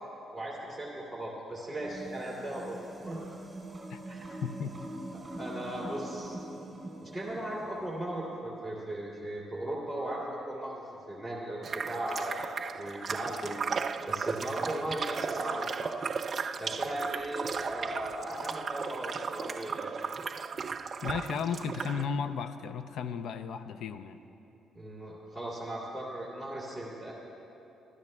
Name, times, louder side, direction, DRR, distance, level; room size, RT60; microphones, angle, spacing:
voice 1, 0.3-2.8 3.1-3.3 4.1-4.2 5.1-6.4 7.0-13.6 14.1-15.9 16.6-19.9 24.7-27.1, right 1 dB, 5° left, -5 dB, 2.5 m, -37 dB
sound 1, 1.7-8.1, right 1 dB, 15° right, 2.6 m, -43 dB
voice 2, 4.4-4.7 21.0-24.2, left 6 dB, 75° left, 10 dB, 0.4 m, -34 dB
sound 2, 11.6-22.0, right 5 dB, 45° right, 0.4 m, -35 dB
27.0 x 13.5 x 2.2 m, 3.0 s
cardioid pair, 90°, 0 cm